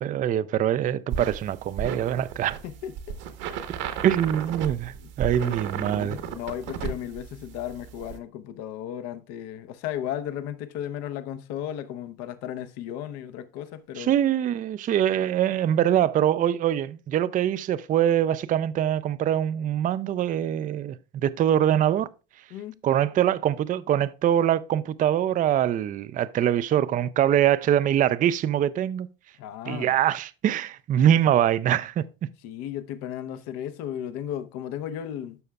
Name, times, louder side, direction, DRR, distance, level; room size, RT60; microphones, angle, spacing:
voice 1, 0.0-2.6 4.0-6.2 14.0-22.1 22.8-29.1 29.7-32.0, right 10 dB, 30° right, 0.4 m, -23 dB
sound 1, 1.1-8.2, right 7 dB, 60° right, 1.2 m, -34 dB
voice 2, 2.6-3.2 4.9-14.1 22.5-22.8 29.4-29.9 32.4-35.4, left 10 dB, 60° left, 0.8 m, -35 dB
12.5 x 5.5 x 2.3 m
hypercardioid pair, 75°, 29 cm